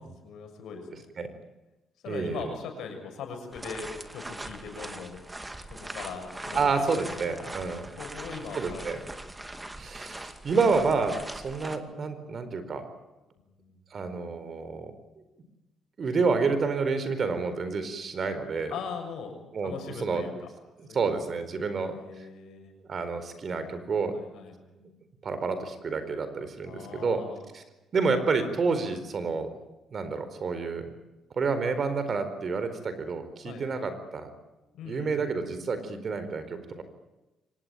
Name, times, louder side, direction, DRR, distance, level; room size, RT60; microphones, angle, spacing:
voice 1, 0.2-1.0 2.0-5.2 5.8-6.8 8.0-9.1 13.6-13.7 18.7-19.4 19.6-20.3 20.9-21.0 21.8-22.7 24.1-24.5 26.7-27.5 33.4-33.6 34.7-35.4, left 6 dB, 80° left, 5 dB, 6.8 m, -40 dB
voice 2, 2.1-2.5 6.5-7.9 8.5-9.0 9.8-12.9 13.9-14.9 16.0-18.8 19.5-20.3 20.8-21.9 22.9-24.2 24.8-24.9 25.2-27.2 27.5-27.6 27.9-29.5 29.9-30.8 31.3-34.3 34.8-36.8, right 4 dB, 45° right, 10 dB, 4.4 m, -29 dB
sound 1, 3.5-11.8, right 1 dB, 15° right, 2.3 m, -41 dB
24.5 x 19.0 x 9.1 m, 1.0 s
cardioid pair, 90°, 0 cm